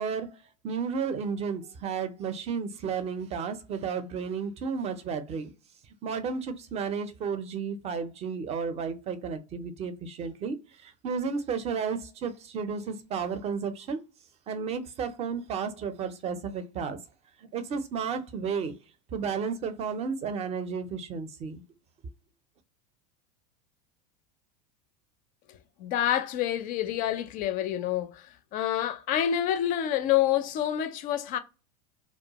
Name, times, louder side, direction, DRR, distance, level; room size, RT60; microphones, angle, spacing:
voice 1, 0.0-5.5 6.0-14.0 14.5-17.0 17.4-18.8 19.1-21.6, right 6 dB, 30° right, 0.5 m, -33 dB
voice 2, 25.5-31.4, left 11 dB, 40° left, 0.4 m, -28 dB
2.3 x 2.1 x 2.8 m
hypercardioid pair, 90°, 21 cm